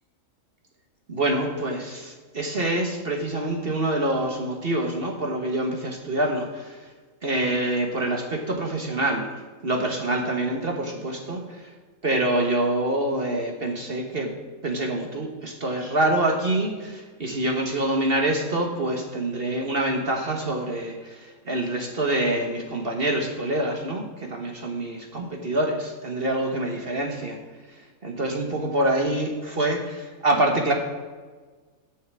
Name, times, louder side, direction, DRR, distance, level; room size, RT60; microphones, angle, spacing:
voice 1, 1.1-6.8 7.2-9.3 9.6-11.7 12.0-14.3 14.6-27.4 28.0-30.7, right 1 dB, 45° right, 2 dB, 1.4 m, -26 dB
10.5 x 6.5 x 6.2 m, 1.4 s
omnidirectional pair, 1.5 m